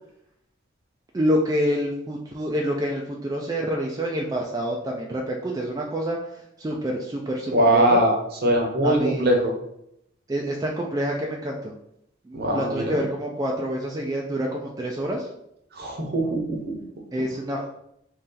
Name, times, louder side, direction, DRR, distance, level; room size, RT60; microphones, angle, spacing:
voice 1, 1.1-6.2 6.6-8.0 8.8-9.3 10.3-11.7 12.3-15.3 17.1-17.7, equal, 20° right, -1 dB, 0.3 m, -27 dB
voice 2, 7.5-8.1 8.4-9.5 12.3-13.0 15.7-16.6, right 1 dB, 55° right, 1 dB, 0.9 m, -21 dB
3.1 x 2.8 x 3.7 m, 0.76 s
head